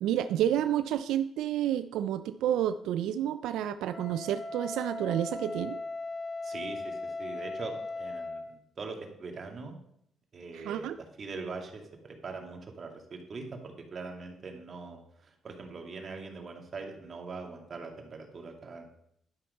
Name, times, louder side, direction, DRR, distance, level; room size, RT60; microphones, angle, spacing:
voice 1, 0.0-5.8 10.5-11.0, right 11 dB, 85° right, 11 dB, 0.4 m, -30 dB
Wind instrument woodwind instrument, 3.9-8.5, left 2 dB, 40° left, 3.2 m, -38 dB
voice 2, 6.4-9.7 10.3-10.9 11.2-18.8, right 4 dB, 45° right, 3 dB, 2.2 m, -42 dB
11.5 x 5.8 x 5.4 m, 0.72 s
cardioid pair, 90°, 0 cm